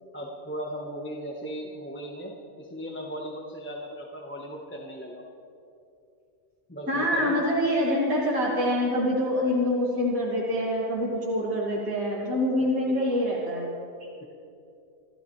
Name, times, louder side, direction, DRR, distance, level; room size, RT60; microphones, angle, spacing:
voice 1, 0.1-5.3 6.7-7.4 12.8-13.0, equal, 10° left, -2 dB, 1.4 m, -37 dB
voice 2, 6.9-13.7, left 1 dB, 75° right, -6 dB, 3.2 m, -25 dB
29.5 x 13.0 x 3.4 m, 2.6 s
omnidirectional pair, 1.5 m